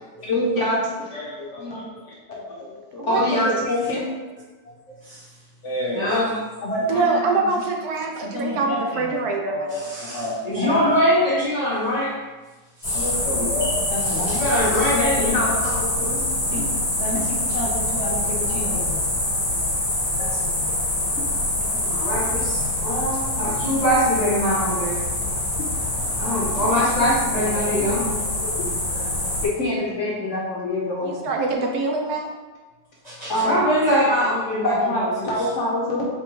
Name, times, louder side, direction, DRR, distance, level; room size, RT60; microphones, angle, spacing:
voice 1, 0.2-1.8 2.3-4.0 5.6-6.1 6.6-7.6 8.2-9.0 9.4-9.8 10.1-10.9 12.9-14.5 14.9-16.2 16.5-16.6 17.0-19.0 20.2-20.4 26.5-26.6 27.4-28.2 28.4-28.7 29.4-31.3 33.2-33.6 34.6-36.0, left 1 dB, 60° left, -4 dB, 0.8 m, -27 dB
voice 2, 3.0-3.6 6.9-9.9 26.2-26.4 31.0-32.3, right 3 dB, 70° right, 1 dB, 1.1 m, -25 dB
voice 3, 5.9-6.3 9.7-12.1 12.8-13.1 13.6-13.7 14.0-15.4 21.8-25.1 26.2-28.1 33.0-35.3, equal, 85° left, -8 dB, 0.3 m, -23 dB
sound 1, 12.8-29.5, left 1 dB, 30° left, 1.6 m, -25 dB
4.1 x 3.5 x 3.0 m, 1.2 s
omnidirectional pair, 1.8 m